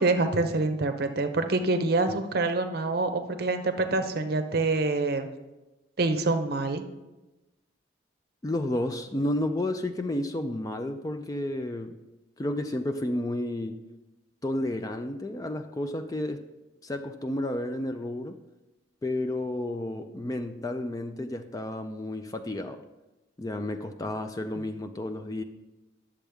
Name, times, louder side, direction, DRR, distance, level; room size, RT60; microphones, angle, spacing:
voice 1, 0.0-5.3 6.0-6.8, right 3 dB, 50° right, 7 dB, 0.6 m, -26 dB
voice 2, 8.4-11.9 12.4-13.8 14.4-16.4 16.8-18.4 19.0-22.8 23.4-25.4, left 1 dB, 20° left, 8 dB, 0.3 m, -31 dB
10.0 x 7.1 x 3.4 m, 1.0 s
head